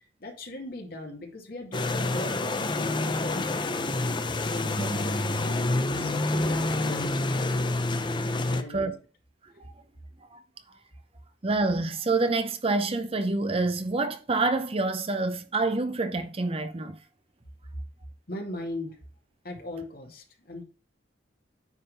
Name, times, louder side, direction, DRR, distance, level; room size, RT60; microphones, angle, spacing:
voice 1, 0.2-3.7 4.3-7.7 8.5-8.9 18.3-19.0 19.4-20.6, left 1 dB, 55° left, 2.2 m, -39 dB
sound 1, 1.7-8.6, left 2 dB, 25° left, 0.6 m, -28 dB
voice 2, 11.4-17.0, right 3 dB, 30° right, 0.7 m, -27 dB
9.7 x 3.6 x 5.6 m
head